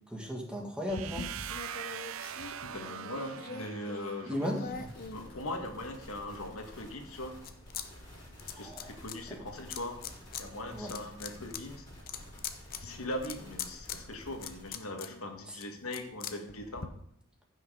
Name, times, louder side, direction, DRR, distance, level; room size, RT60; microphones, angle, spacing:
voice 1, 0.1-1.3 4.3-4.8 8.5-8.9 10.7-10.9 15.5-15.6, equal, 5° right, -1 dB, 2.0 m, -36 dB
sound 1, 0.9-6.0 6.5-7.9 8.1-9.2 9.7-10.4 10.8-16.9, left 6 dB, 45° left, 0.8 m, -43 dB
sound 2, 0.9-4.7, right 9 dB, 70° right, 0.5 m, -42 dB
voice 2, 2.6-4.6 5.1-7.4 8.5-10.0 10.3-11.9 12.8-16.9, left 1 dB, 90° left, 4 dB, 1.6 m, -40 dB
sound 3, 4.7-14.7, left 1 dB, 20° left, 4.8 m, -51 dB
15.0 x 6.3 x 3.7 m, 0.72 s
head